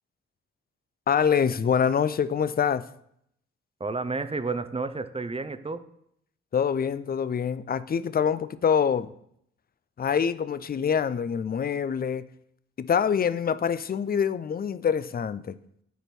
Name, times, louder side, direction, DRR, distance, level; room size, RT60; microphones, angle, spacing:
voice 1, 1.1-2.8 6.5-9.1 10.0-12.3 12.8-15.5, left 7 dB, 30° left, 0.5 m, -25 dB
voice 2, 3.8-5.9, right 3 dB, 20° right, 0.6 m, -31 dB
8.2 x 4.4 x 4.4 m
supercardioid pair, 40°, 30 cm